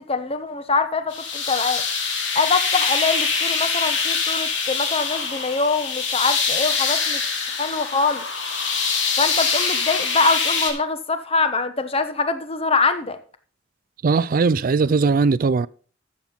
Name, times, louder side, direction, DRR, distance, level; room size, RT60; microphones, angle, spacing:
voice 1, 0.1-1.8 2.3-8.2 9.2-13.2, left 4 dB, 30° left, 1.0 m, -24 dB
sound 1, 1.1-10.7, left 5 dB, 70° left, 2.5 m, -24 dB
voice 2, 14.0-15.7, right 4 dB, 45° right, 0.4 m, -19 dB
13.5 x 7.3 x 4.0 m
head